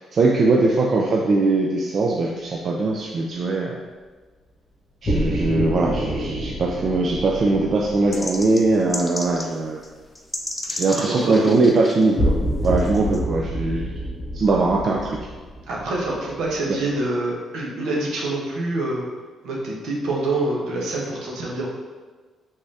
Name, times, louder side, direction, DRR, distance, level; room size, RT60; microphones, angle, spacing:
voice 1, 0.0-3.8 5.0-9.8 10.8-12.4 12.6-13.9 14.3-15.2 16.7-16.8, right 3 dB, 50° right, -1 dB, 0.3 m, -21 dB
sound 1, 5.0-9.3 12.2-16.8, equal, 40° left, 1.1 m, -27 dB
sound 2, 8.1-9.5 9.8-9.9 10.2-12.0 12.6-13.2, left 2 dB, 20° left, 0.4 m, -32 dB
voice 2, 11.1-11.5 15.7-19.1 19.4-21.7, right 2 dB, 80° right, -3 dB, 0.8 m, -26 dB
3.5 x 3.2 x 2.7 m, 1.4 s
cardioid pair, 90°, 0 cm